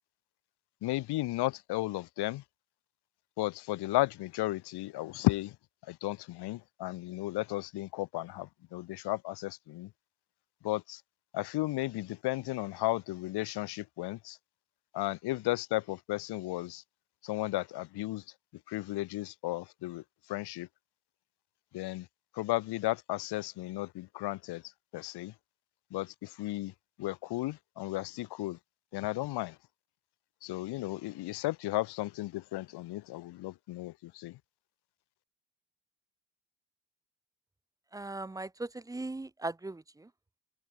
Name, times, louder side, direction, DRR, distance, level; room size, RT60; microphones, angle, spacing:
voice 1, 0.8-2.4 3.4-5.6 5.9-9.9 10.6-11.0 11.3-14.4 14.9-16.8 17.2-18.2 18.7-20.0 20.3-20.7 21.7-22.1 22.3-24.6 24.9-25.3 25.9-26.7 27.0-28.6 28.9-29.6 30.4-34.4, left 17 dB, 70° left, 0.7 m, -34 dB
voice 2, 37.9-40.1, right 2 dB, 10° right, 0.4 m, -39 dB
cardioid pair, 75°, 41 cm